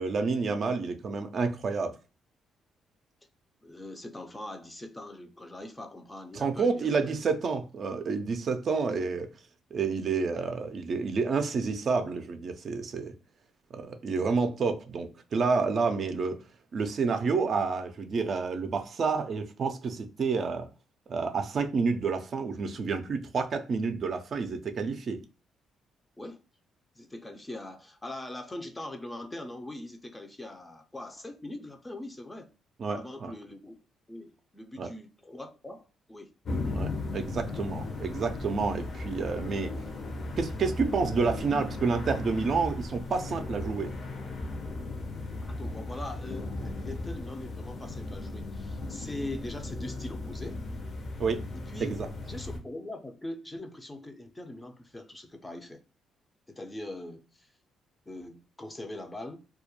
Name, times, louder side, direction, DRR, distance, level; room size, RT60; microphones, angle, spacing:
voice 1, 0.0-1.9 6.3-9.3 9.7-13.1 13.7-16.4 16.7-20.7 21.1-25.2 32.8-33.3 34.8-34.9 36.7-39.7 40.4-43.9 51.2-51.4 51.8-52.1, right 4 dB, 50° right, 0.4 m, -29 dB
voice 2, 3.6-7.1 26.2-26.4 27.0-32.5 32.9-33.7 34.1-36.3 45.4-50.6 51.7-51.9 52.3-55.8 56.5-57.5 58.1-59.4, left 1 dB, 15° left, 0.5 m, -42 dB
sound 1, 36.4-52.6, left 2 dB, 50° left, 0.7 m, -36 dB
2.3 x 2.1 x 2.8 m
cardioid pair, 90°, 0 cm